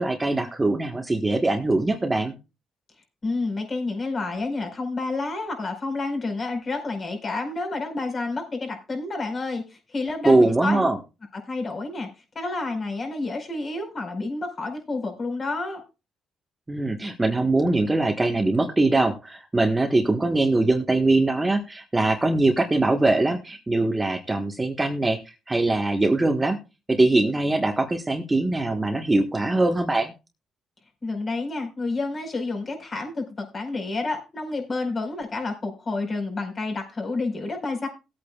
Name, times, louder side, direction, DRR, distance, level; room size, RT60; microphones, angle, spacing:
voice 1, 0.0-2.3 10.2-11.0 16.7-25.2 25.5-26.6 26.9-30.1, right 2 dB, 15° right, 4 dB, 1.4 m, -22 dB
voice 2, 3.2-10.9 11.5-12.1 12.3-15.8 31.0-37.9, left 3 dB, 40° left, 4 dB, 4.7 m, -29 dB
19.5 x 8.5 x 2.4 m, 0.28 s
cardioid pair, 90°, 0 cm